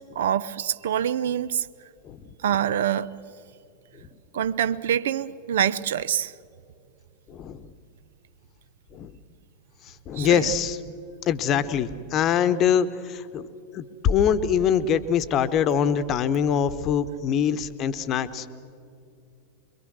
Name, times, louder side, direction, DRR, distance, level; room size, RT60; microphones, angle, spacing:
voice 1, 0.1-1.7 2.4-3.1 4.3-6.3 10.2-10.5, right 9 dB, 60° right, 17 dB, 0.6 m, -25 dB
voice 2, 7.3-7.7 8.9-9.1 9.9-10.8 11.3-13.5 13.7-18.5, left 8 dB, 35° left, 13 dB, 1.0 m, -24 dB
25.5 x 23.0 x 6.3 m, 2.5 s
figure-of-eight pair, 90°, 0 cm